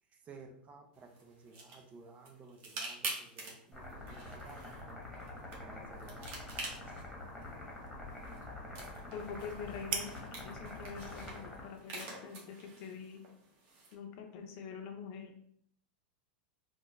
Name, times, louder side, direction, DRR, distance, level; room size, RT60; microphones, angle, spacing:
voice 1, 0.0-4.7 5.5-6.8 8.8-9.2, right 3 dB, 30° right, 3 dB, 0.7 m, -55 dB
sound 1, 0.9-13.9, right 3 dB, 50° right, 1.1 m, -48 dB
sound 2, 3.7-11.6, left 2 dB, 10° left, 1.3 m, -46 dB
sound 3, 5.6-13.3, right 6 dB, 75° right, 0.5 m, -49 dB
voice 2, 9.1-13.2 13.9-15.3, left 6 dB, 55° left, 3 dB, 0.7 m, -45 dB
3.6 x 2.3 x 3.1 m, 0.65 s
hypercardioid pair, 110°, 5 cm